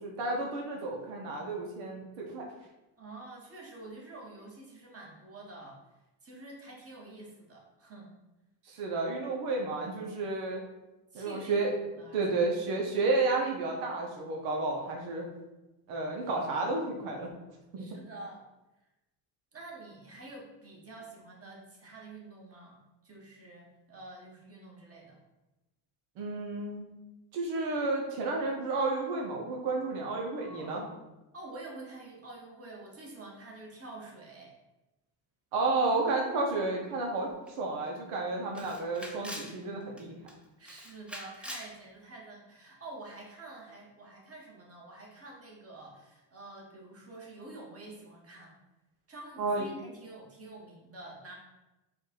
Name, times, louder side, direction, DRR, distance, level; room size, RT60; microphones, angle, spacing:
voice 1, 0.0-2.4 8.7-10.6 11.1-11.7 12.1-15.3 15.9-17.3 17.7-17.8 26.2-26.8 27.3-30.8 35.5-37.3 37.6-40.1 49.4-49.7, right 3 dB, 85° right, 0 dB, 0.9 m, -31 dB
voice 2, 3.0-5.8 6.2-8.1 11.1-11.7 12.0-12.2 17.8-18.4 19.5-22.8 23.0-25.2 30.2-30.9 31.3-34.5 40.6-48.5 49.1-51.3, right 2 dB, 30° right, -2 dB, 1.5 m, -48 dB
Camera, 37.5-37.6 37.9-38.0 38.5-39.6 40.0-40.3 40.6-41.7, equal, ahead, 0.7 m, -43 dB
4.5 x 2.6 x 4.5 m, 1.0 s
supercardioid pair, 75°, 49 cm